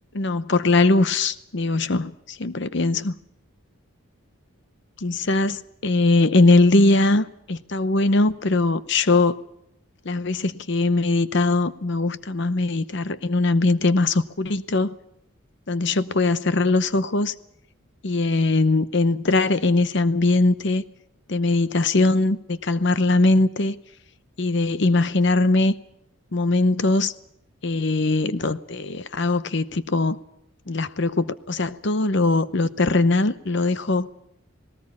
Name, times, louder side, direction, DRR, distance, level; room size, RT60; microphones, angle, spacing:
voice 1, 0.1-3.1 5.0-9.4 10.0-14.9 15.7-17.3 18.0-20.8 21.3-23.8 24.4-25.7 26.3-27.1 27.6-30.2 30.7-34.1, left 2 dB, 55° left, 14 dB, 0.8 m, -21 dB
19.0 x 18.5 x 8.5 m, 0.78 s
head